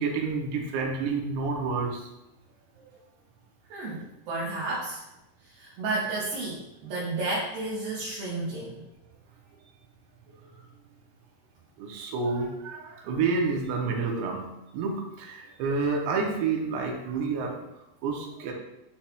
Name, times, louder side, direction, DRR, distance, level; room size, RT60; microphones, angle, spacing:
voice 1, 0.0-2.1 10.3-10.6 11.8-18.5, right 4 dB, 90° right, 0 dB, 2.9 m, -29 dB
voice 2, 3.7-5.0 5.4-8.8, right 2 dB, 70° right, -8 dB, 2.8 m, -32 dB
10.5 x 4.2 x 2.3 m, 0.92 s
omnidirectional pair, 4.8 m